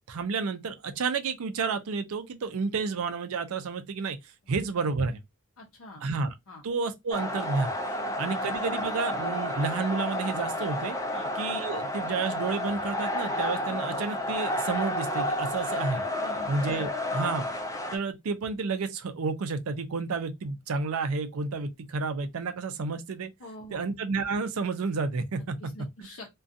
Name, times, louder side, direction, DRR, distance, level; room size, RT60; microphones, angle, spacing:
voice 1, 0.1-5.2 6.0-6.3 6.6-7.7 8.2-11.0 11.4-16.0 16.5-17.5 17.9-23.3 23.7-25.6, right 4 dB, 70° right, 0.4 m, -30 dB
voice 2, 5.6-6.0 6.5-6.6 8.0-8.4 11.1-11.3 16.2-16.6 17.1-17.3 23.4-23.9 25.6-26.3, left 2 dB, 70° left, 0.6 m, -45 dB
sound 1, 7.1-18.0, left 1 dB, 15° left, 0.4 m, -31 dB
2.4 x 2.2 x 2.6 m
head